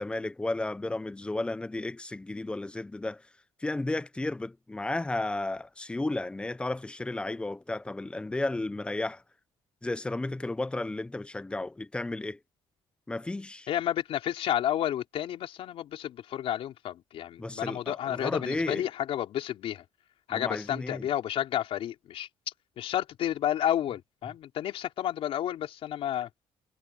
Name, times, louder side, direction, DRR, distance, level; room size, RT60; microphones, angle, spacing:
voice 1, 0.0-3.2 3.6-9.2 9.8-12.4 13.1-13.7 17.4-18.8 20.3-21.1, left 2 dB, 10° left, 0.7 m, -33 dB
voice 2, 13.7-19.8 20.3-22.3 22.8-26.3, left 11 dB, 65° left, 3.8 m, -31 dB
cardioid pair, 130°, 11 cm